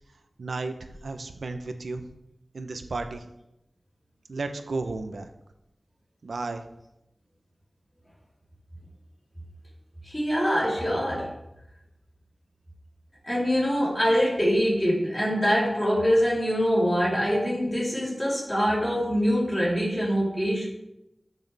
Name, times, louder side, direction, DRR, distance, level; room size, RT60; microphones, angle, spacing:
voice 1, 0.4-2.1 2.5-3.3 4.3-5.3 6.2-6.6, right 3 dB, 90° right, 7 dB, 0.8 m, -33 dB
voice 2, 10.1-11.3 13.2-20.7, equal, 15° left, -7 dB, 3.6 m, -24 dB
13.5 x 6.2 x 3.5 m, 0.88 s
wide cardioid pair, 70°, 0 cm